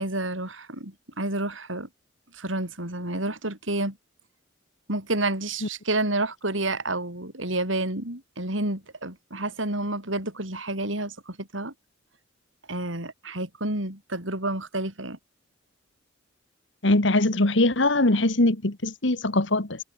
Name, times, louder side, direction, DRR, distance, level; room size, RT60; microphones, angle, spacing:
voice 1, 0.0-1.9 2.3-4.0 4.9-11.7 12.7-15.2, right 2 dB, 85° right, 7.8 m, -29 dB
voice 2, 16.8-19.8, left 2 dB, 70° left, 2.0 m, -22 dB
head